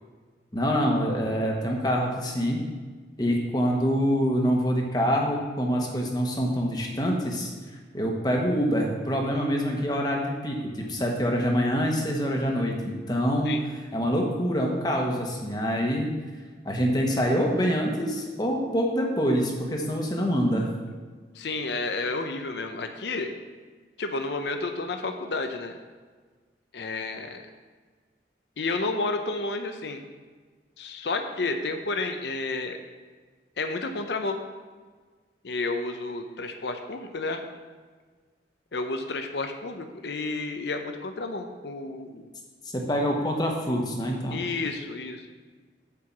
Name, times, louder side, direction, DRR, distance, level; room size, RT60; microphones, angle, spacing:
voice 1, 0.5-2.6 3.2-7.5 7.9-13.6 13.9-16.1 16.6-20.7 42.7-44.4, equal, 25° left, 0 dB, 1.2 m, -25 dB
voice 2, 21.4-23.3 24.0-25.7 26.7-27.4 28.6-30.0 30.8-32.8 33.6-34.4 35.4-37.4 38.7-42.3 44.3-45.2, left 3 dB, 70° left, 6 dB, 0.7 m, -31 dB
8.4 x 4.7 x 7.3 m, 1.4 s
head